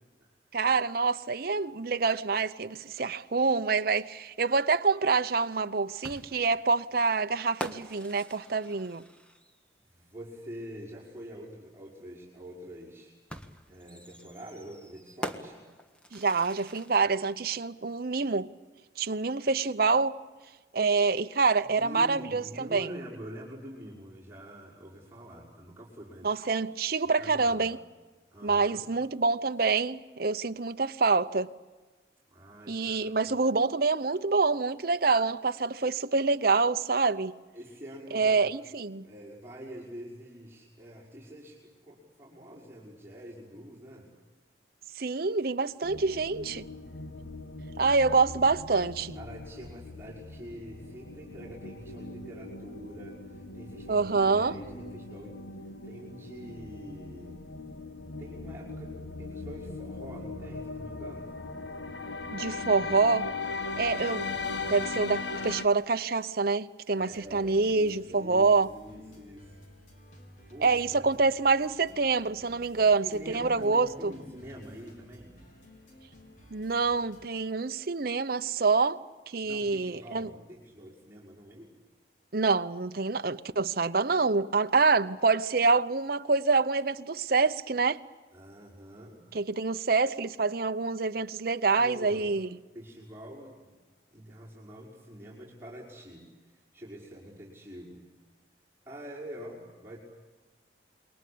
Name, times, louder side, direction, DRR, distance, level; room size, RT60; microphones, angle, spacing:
voice 1, 0.5-9.0 16.1-18.5 19.0-20.2 20.7-22.9 26.2-27.8 28.4-31.5 32.7-37.3 38.1-39.0 45.0-46.7 47.8-49.1 53.9-54.5 62.3-63.3 63.8-64.3 64.7-68.7 70.6-74.1 76.5-79.0 79.3-80.3 82.3-88.0 89.3-92.5, right 4 dB, 55° right, 0.8 m, -26 dB
sound 1, 6.0-9.7 11.2-11.3 13.3-17.2, equal, 5° left, 1.5 m, -43 dB
voice 2, 9.9-13.1 13.7-15.6 21.6-26.4 27.0-27.7 28.3-28.9 32.3-33.3 37.5-38.5 39.0-44.1 49.1-55.4 55.8-57.4 58.2-58.9 59.2-61.4 66.9-69.7 70.5-71.2 73.0-75.3 79.4-81.7 88.3-89.3 91.7-92.4 92.7-93.7 94.1-98.0 98.9-100.0, equal, 15° right, 5.7 m, -46 dB
sound 2, 45.8-65.6, left 3 dB, 80° left, 1.5 m, -39 dB
sound 3, 67.0-77.3, equal, 45° left, 4.8 m, -54 dB
28.5 x 23.0 x 8.6 m
head